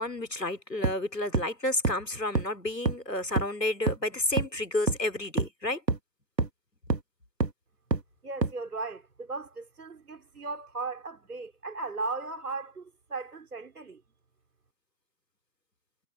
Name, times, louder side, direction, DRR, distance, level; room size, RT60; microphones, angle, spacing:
voice 1, 0.0-5.8, left 1 dB, 90° left, 3.6 m, -31 dB
sound 1, 0.8-0.9 1.3-1.4 1.8-1.9 2.3-2.4 2.9-3.0 3.4-3.5 3.9-4.0 4.4-4.5 4.9-5.0 5.4-5.5 5.9-6.0 6.4-6.5 6.9-7.0 7.4-7.5 7.9-8.0 8.4-8.5, right 3 dB, 90° right, 1.6 m, -25 dB
voice 2, 8.2-14.0, right 3 dB, 70° right, 4.0 m, -37 dB
figure-of-eight pair, 145°, 48 cm